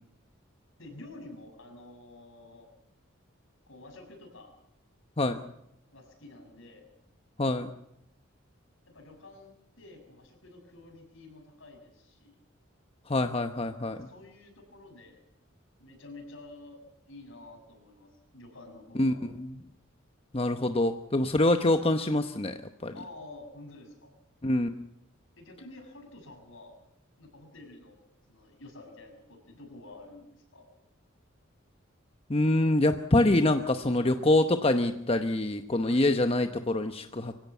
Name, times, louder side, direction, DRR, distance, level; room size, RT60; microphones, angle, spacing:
voice 1, 0.8-2.7 3.7-4.5 5.9-6.9 8.9-12.4 13.9-15.2 15.8-16.8 17.1-19.2 22.9-24.2 25.4-26.8 27.2-28.0 28.3-30.7 34.0-34.2 35.8-36.1, left 2 dB, 70° left, 3 dB, 6.9 m, -49 dB
voice 2, 7.4-7.7 13.1-14.1 19.0-19.5 20.3-22.9 24.4-24.7 32.3-37.4, left 2 dB, 30° left, 8 dB, 0.9 m, -25 dB
24.5 x 16.5 x 8.4 m, 0.81 s
head